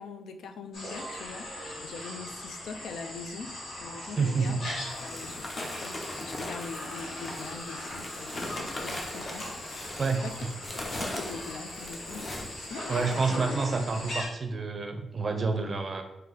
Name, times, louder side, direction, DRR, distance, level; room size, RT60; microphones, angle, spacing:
voice 1, 0.0-1.5 1.8-4.6 4.9-10.3 10.7-13.3, left 5 dB, 85° left, 7 dB, 0.3 m, -43 dB
sound 1, 0.7-14.3, left 1 dB, 65° left, 1.5 m, -39 dB
sound 2, 3.9-4.0 4.6-13.3, left 1 dB, 30° left, 0.6 m, -39 dB
voice 2, 4.0-4.6 10.0-10.2 12.9-16.0, right 4 dB, 35° right, 5 dB, 0.5 m, -28 dB
3.7 x 2.6 x 3.9 m, 0.90 s
wide cardioid pair, 145°, 0 cm